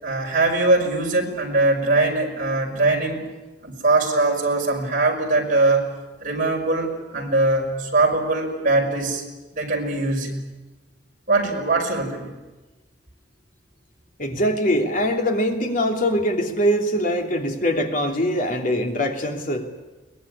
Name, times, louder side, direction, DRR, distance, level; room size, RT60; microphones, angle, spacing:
voice 1, 0.0-3.3 3.6-5.9 6.2-9.2 9.5-10.3 11.3-12.3, right 2 dB, 45° right, 1 dB, 5.5 m, -21 dB
voice 2, 14.2-19.7, equal, 45° left, 3 dB, 3.0 m, -22 dB
22.5 x 20.0 x 10.0 m, 1.1 s
head